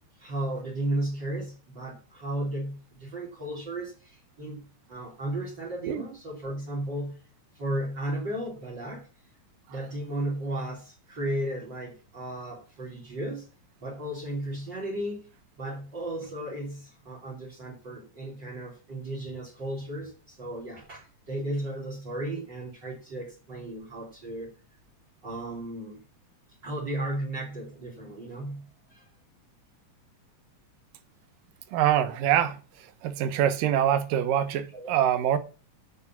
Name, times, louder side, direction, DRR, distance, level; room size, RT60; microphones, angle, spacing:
voice 1, 0.2-4.6 4.9-7.2 7.5-9.1 9.7-13.5 13.8-15.3 15.6-24.5 25.2-26.0 26.6-29.1 34.7-34.9, right 1 dB, 35° right, 3.5 m, -34 dB
voice 2, 31.7-32.6 33.0-35.4, right 10 dB, 90° right, 2.7 m, -24 dB
8.4 x 7.3 x 7.3 m
omnidirectional pair, 3.8 m